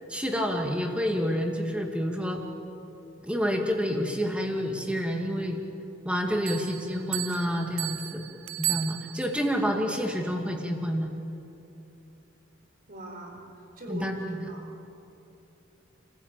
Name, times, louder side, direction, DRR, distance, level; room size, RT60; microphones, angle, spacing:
voice 1, 0.1-2.4 3.2-5.6 6.0-8.2 8.6-11.1 13.9-14.5, equal, 5° right, 2 dB, 2.2 m, -28 dB
sound 1, 6.4-9.5, right 18 dB, 70° right, 0.6 m, -34 dB
voice 2, 12.9-14.7, right 2 dB, 45° right, 1 dB, 4.5 m, -41 dB
29.0 x 15.5 x 9.1 m, 2.8 s
head